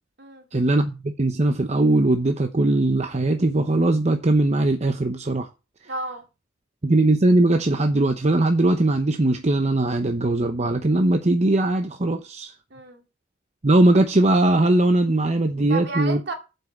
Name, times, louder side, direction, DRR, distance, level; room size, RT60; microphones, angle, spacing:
voice 1, 0.5-5.5 6.8-12.5 13.6-16.2, right 2 dB, 35° right, 0.8 m, -20 dB
voice 2, 5.8-6.3 12.7-13.0 15.7-16.3, right 3 dB, 65° right, 2.4 m, -32 dB
7.8 x 5.5 x 7.3 m
head